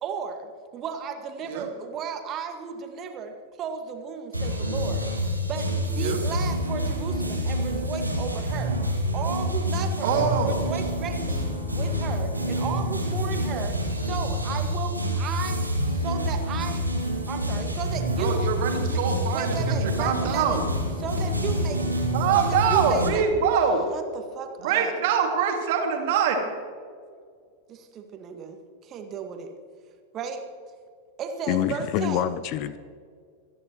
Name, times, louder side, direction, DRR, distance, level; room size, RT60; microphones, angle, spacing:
voice 1, 0.0-5.1 5.4-5.7 6.0-8.8 9.1-13.8 14.1-16.8 17.3-18.5 18.8-19.0 19.3-20.6 21.0-23.2 23.9-24.9 27.7-29.5 30.1-30.4 31.2-32.3, right 6 dB, 30° right, 1.8 m, -34 dB
sound 1, 4.3-23.1, equal, 90° right, 2.2 m, -27 dB
voice 2, 10.0-10.5 18.2-20.6 22.1-23.8 24.6-26.4, right 7 dB, 50° right, 2.4 m, -24 dB
voice 3, 31.5-32.8, left 12 dB, 45° left, 0.6 m, -26 dB
25.0 x 10.0 x 3.1 m
figure-of-eight pair, 90°, 0 cm